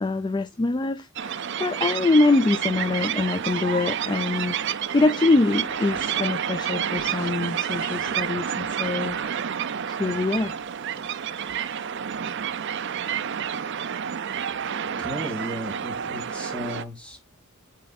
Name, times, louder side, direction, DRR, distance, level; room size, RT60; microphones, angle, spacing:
voice 1, 0.0-4.6 4.9-9.4 9.9-10.5, left 2 dB, 20° left, 0.3 m, -24 dB
sound 1, 1.2-16.8, right 8 dB, 55° right, 0.5 m, -29 dB
Scratching (performance technique), 5.4-7.3 7.7-9.3 10.0-10.6, left 2 dB, 90° left, 1.9 m, -44 dB
voice 2, 15.0-17.4, equal, 5° left, 2.1 m, -35 dB
9.2 x 3.8 x 4.0 m
head